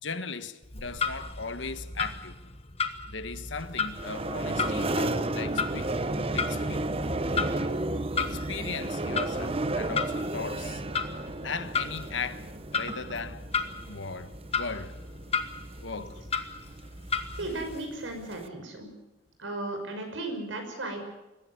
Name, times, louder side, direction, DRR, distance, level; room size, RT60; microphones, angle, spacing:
voice 1, 0.0-2.4 3.1-5.9 6.3-6.9 8.2-10.8 11.4-12.5 12.7-13.4 13.9-14.9 15.8-16.2, left 4 dB, 75° left, 1.4 m, -37 dB
Clock, 0.6-17.8, left 5 dB, 30° left, 1.5 m, -35 dB
sound 1, 3.6-18.5, right 2 dB, 30° right, 0.9 m, -33 dB
voice 2, 17.4-18.9 19.4-21.0, right 2 dB, 80° right, 6.0 m, -35 dB
22.5 x 15.0 x 9.6 m
head